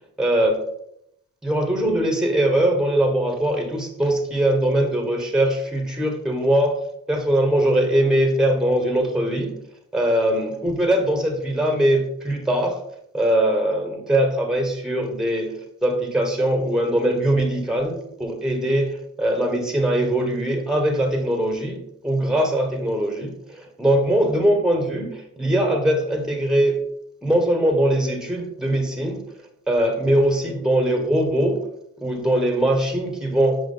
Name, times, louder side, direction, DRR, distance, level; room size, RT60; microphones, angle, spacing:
voice 1, 0.2-0.6 1.4-6.8 7.1-9.6 9.9-12.8 13.1-26.8 27.2-29.2 29.7-31.6 32.0-33.6, right 1 dB, ahead, 3 dB, 1.6 m, -21 dB
6.1 x 4.9 x 3.9 m, 0.75 s
cardioid pair, 55°, 31 cm